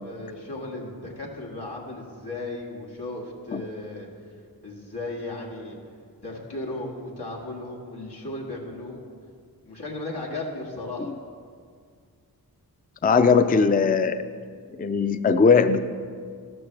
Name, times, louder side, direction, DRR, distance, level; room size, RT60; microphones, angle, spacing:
voice 1, 0.0-4.1 4.6-5.8 6.2-9.0 9.7-11.1, left 2 dB, 85° left, -2 dB, 2.0 m, -35 dB
voice 2, 13.0-14.2 14.8-15.8, left 5 dB, 25° left, 11 dB, 0.4 m, -19 dB
13.0 x 12.0 x 3.3 m, 2.1 s
wide cardioid pair, 70°, 38 cm